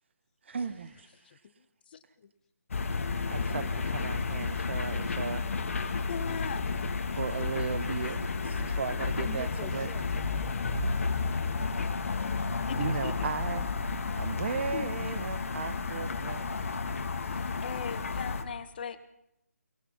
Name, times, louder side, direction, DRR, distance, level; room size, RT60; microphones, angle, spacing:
voice 1, 0.5-1.1 3.3-5.4 7.2-8.2 8.4-9.9 12.8-13.7 14.1-16.5 17.2-17.3, right 5 dB, 45° right, 13 dB, 1.5 m, -36 dB
voice 2, 1.2-1.5 1.9-2.3 6.1-6.7 7.1-7.2 7.8-7.9 12.7-13.3 14.7-15.2 17.3-19.0, left 7 dB, 35° left, 12 dB, 1.5 m, -40 dB
sound 1, 2.7-18.4, left 4 dB, 55° left, 2.6 m, -32 dB
voice 3, 9.1-11.3, left 5 dB, 5° left, 3 dB, 2.1 m, -46 dB
29.0 x 20.0 x 5.7 m, 0.82 s
hypercardioid pair, 165°, 9 cm